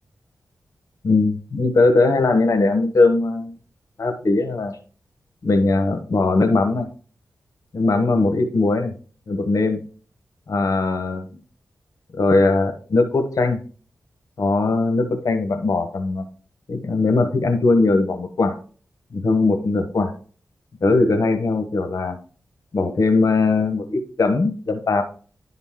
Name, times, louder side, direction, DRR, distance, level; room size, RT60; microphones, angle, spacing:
voice 1, 1.0-3.5 4.0-4.8 5.4-6.9 7.7-8.9 9.3-9.8 10.5-11.3 12.1-13.6 14.4-16.3 16.7-18.6 19.1-20.1 20.8-22.2 22.7-25.0, left 3 dB, 65° left, 7 dB, 1.2 m, -20 dB
11.0 x 4.0 x 3.8 m, 0.40 s
wide cardioid pair, 80°, 6 cm